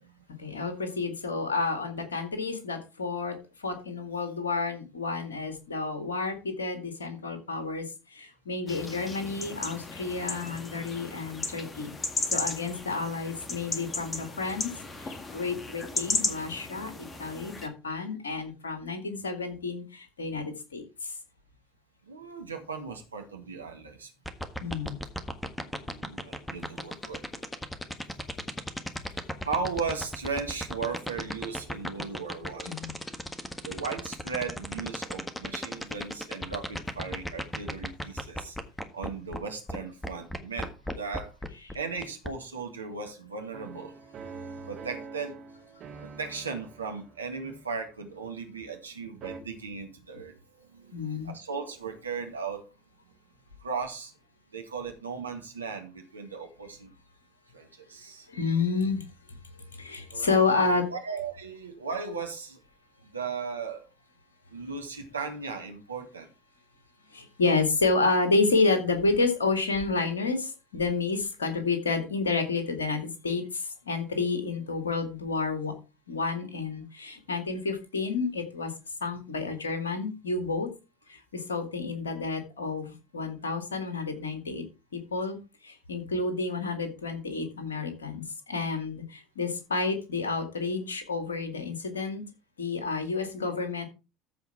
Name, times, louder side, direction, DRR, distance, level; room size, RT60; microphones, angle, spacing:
voice 1, 0.4-3.3 3.6-7.9 8.1-11.9 12.3-14.7 15.0-21.1 24.6-25.0 32.6-33.0 50.9-51.3 58.3-59.0 59.8-60.9 67.1-75.7 76.1-78.7 79.0-80.7 81.1-84.6 84.9-85.4 85.6-92.2 92.6-93.9, left 3 dB, 80° left, 2.1 m, -30 dB
sound 1, 8.7-17.7, left 3 dB, 25° left, 2.0 m, -35 dB
voice 2, 22.1-24.1 25.6-27.4 28.1-28.5 29.5-32.8 33.6-38.6 38.9-41.3 41.7-44.0 44.7-45.4 46.0-52.6 53.6-54.1 54.5-56.9 57.5-58.3 60.1-62.6 63.1-63.8 64.5-66.3, right 5 dB, 85° right, 1.9 m, -37 dB
sound 2, 24.3-39.4 39.7-39.8 40.0-42.3, equal, 10° left, 1.6 m, -34 dB
sound 3, 43.5-48.9 49.2-49.4, right 5 dB, 45° right, 2.4 m, -46 dB
14.0 x 4.7 x 4.5 m
figure-of-eight pair, 70°, 0 cm